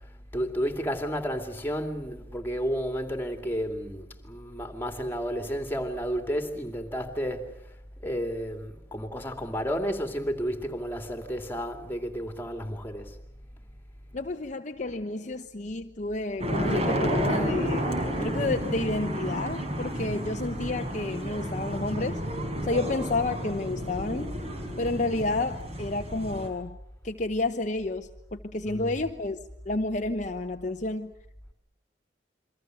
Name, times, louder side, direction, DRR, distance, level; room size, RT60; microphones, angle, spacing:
voice 1, 0.0-7.5 8.0-13.2 28.7-29.0, equal, 10° left, 2.7 m, -32 dB
voice 2, 14.1-17.9 18.2-22.2 22.6-24.3 24.8-26.8 27.0-29.4 29.6-31.1, left 2 dB, 40° left, 1.0 m, -30 dB
sound 1, 16.4-26.5, equal, 35° right, 4.7 m, -31 dB
28.5 x 24.0 x 7.9 m
head